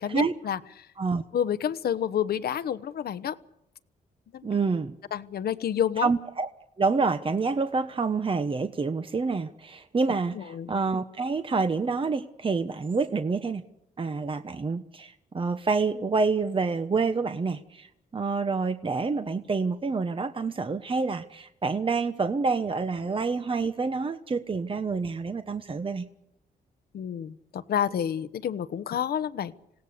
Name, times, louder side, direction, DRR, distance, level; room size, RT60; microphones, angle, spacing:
voice 1, 0.0-0.9 1.3-3.4 4.3-4.6 5.1-6.1 10.3-10.7 26.9-29.5, left 9 dB, 70° left, 14 dB, 1.1 m, -29 dB
voice 2, 4.4-4.9 6.0-6.5 6.8-13.6 14.0-26.1, right 4 dB, 30° right, 9 dB, 1.2 m, -27 dB
27.0 x 17.5 x 6.8 m, 0.84 s
cardioid pair, 75°, 17 cm